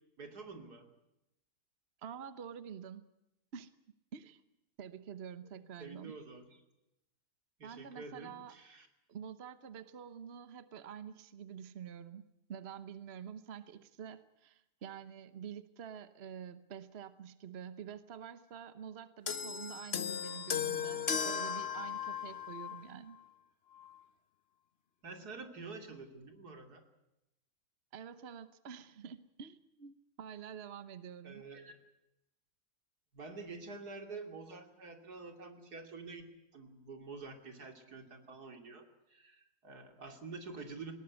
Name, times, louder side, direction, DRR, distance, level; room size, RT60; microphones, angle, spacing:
voice 1, 0.2-0.9 5.4-6.5 7.6-8.9 25.0-26.8 31.2-31.7 33.1-36.2 36.5-40.9, right 4 dB, 85° right, 6 dB, 3.3 m, -48 dB
voice 2, 2.0-3.1 3.5-3.7 4.1-4.4 4.8-6.1 7.6-8.6 9.1-12.2 12.5-23.2 27.9-31.4, right 8 dB, 45° right, 13 dB, 1.1 m, -47 dB
sound 1, 19.3-22.9 23.8-23.9, left 7 dB, 45° left, 1.2 m, -36 dB
19.5 x 19.0 x 9.5 m, 0.89 s
omnidirectional pair, 1.6 m